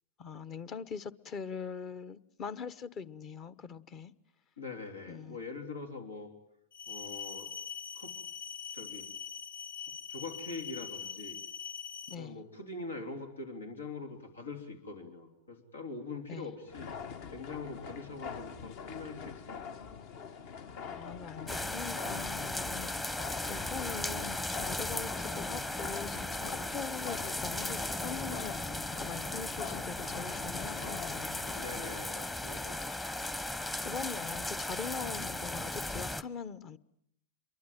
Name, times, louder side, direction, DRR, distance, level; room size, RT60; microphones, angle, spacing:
voice 1, 0.2-4.1 5.1-5.4 12.1-12.4 16.3-16.6 20.8-22.9 23.5-31.5 33.8-36.8, left 6 dB, 35° left, 17 dB, 1.1 m, -42 dB
voice 2, 4.6-6.3 6.9-7.5 7.9-8.1 8.7-9.1 10.1-11.4 12.1-16.9 17.3-19.7 22.1-22.3 26.4-26.7 31.5-32.8, left 3 dB, 85° left, 6 dB, 3.4 m, -43 dB
sound 1, 6.7-12.1, left 7 dB, 70° left, 1.0 m, -42 dB
sound 2, 16.7-32.0, left 6 dB, 50° left, 1.4 m, -45 dB
sound 3, 21.5-36.2, left 2 dB, 15° left, 1.1 m, -37 dB
27.5 x 23.0 x 9.0 m, 0.73 s
hypercardioid pair, 100°, 0 cm